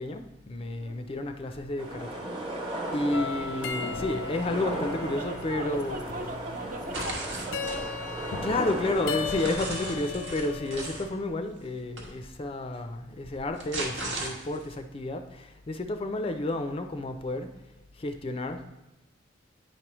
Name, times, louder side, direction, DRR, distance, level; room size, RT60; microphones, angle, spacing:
voice 1, 0.0-2.3 2.5-2.6 2.9-6.0 8.4-17.5 17.9-18.7, left 2 dB, 30° left, 7 dB, 0.4 m, -31 dB
voice 2, 0.6-1.0 2.8-3.3 5.1-8.0, right 2 dB, 45° right, 5 dB, 0.6 m, -40 dB
sound 1, 1.8-9.5, right 1 dB, 25° right, 1.0 m, -36 dB
sound 2, 3.1-11.0, left 5 dB, 90° left, 0.5 m, -37 dB
sound 3, 6.9-7.8 8.4-11.1 12.0-12.1 13.3-14.7, right 2 dB, 80° right, 1.3 m, -37 dB
9.0 x 4.7 x 3.0 m, 0.99 s
head